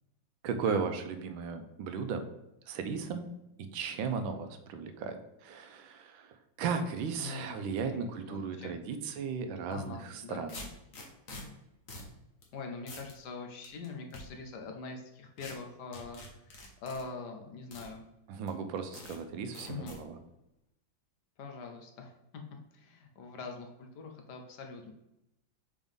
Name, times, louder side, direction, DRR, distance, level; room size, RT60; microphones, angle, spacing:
voice 1, 0.4-2.3 2.7-3.3 3.6-10.6 18.3-20.2, right 5 dB, 85° right, 8 dB, 1.3 m, -36 dB
voice 2, 7.2-8.7 9.7-10.5 12.5-18.1 19.7-20.0 21.4-22.1 22.7-24.9, left 4 dB, 65° left, 3 dB, 1.2 m, -43 dB
sound 1, 9.7-9.9 10.5-11.4 11.9-12.1 12.4-12.5 12.9-13.1 13.6-14.2 15.4-15.5 15.9-17.0 17.7-17.9 18.5-18.6 18.9-19.2 19.5-20.0, left 2 dB, 50° left, 1.4 m, -46 dB
5.0 x 3.5 x 5.4 m, 0.86 s
omnidirectional pair, 2.1 m